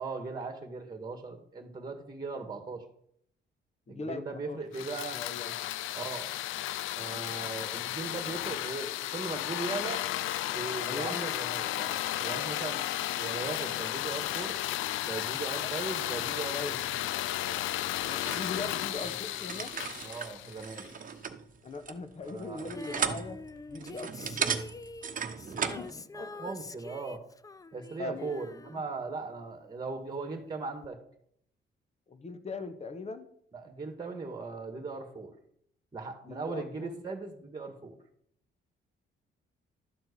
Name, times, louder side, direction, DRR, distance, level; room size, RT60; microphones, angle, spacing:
voice 1, 0.0-2.8 3.9-5.2 5.9-6.4 6.9-10.0 10.5-12.8 13.1-14.6 15.0-16.8 17.4-17.7 20.0-20.9 22.2-22.7 25.4-27.2 27.7-31.0 33.5-35.3 35.9-37.9, right 4 dB, 20° right, 6 dB, 1.8 m, -39 dB
voice 2, 3.9-5.6 10.9-11.2 15.6-15.7 16.5-17.0 18.1-19.7 21.6-23.4 23.7-24.5 25.6-25.9 26.2-26.5 27.9-28.4 28.7-28.8 32.1-33.3 36.2-37.0, left 3 dB, 35° left, 10 dB, 1.2 m, -40 dB
sound 1, 4.7-20.9, left 14 dB, 85° left, 0.4 m, -34 dB
sound 2, 18.0-25.9, right 7 dB, 45° right, 1.0 m, -37 dB
Female singing, 22.7-29.7 30.8-30.9, left 3 dB, 15° left, 0.4 m, -46 dB
12.0 x 4.4 x 8.3 m, 0.70 s
cardioid pair, 90°, 20 cm